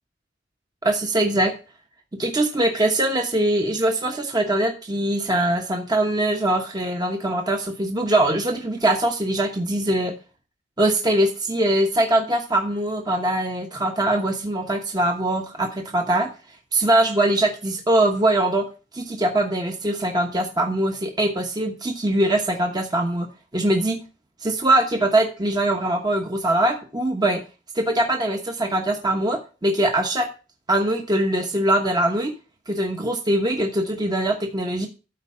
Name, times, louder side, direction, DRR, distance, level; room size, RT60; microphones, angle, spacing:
voice 1, 0.8-1.5 2.2-10.1 10.8-16.3 16.7-18.7 18.9-23.3 23.5-24.0 24.4-27.4 27.7-30.3 30.7-32.3 32.7-34.9, right 1 dB, 20° right, 3 dB, 1.1 m, -22 dB
13.0 x 4.7 x 5.4 m, 0.33 s
head